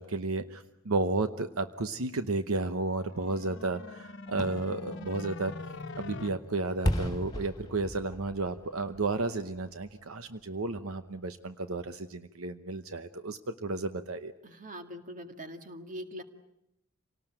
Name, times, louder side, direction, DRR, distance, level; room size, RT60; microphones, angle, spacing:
voice 1, 0.0-5.5 6.0-14.3, right 3 dB, 75° right, 10 dB, 0.9 m, -32 dB
sound 1, 3.0-6.3, left 3 dB, 55° left, 1.2 m, -43 dB
Fireworks, 4.3-10.1 10.5-10.6, equal, 20° left, 2.4 m, -37 dB
voice 2, 14.4-16.2, equal, 40° right, 7 dB, 2.0 m, -42 dB
28.0 x 18.5 x 9.0 m, 0.84 s
head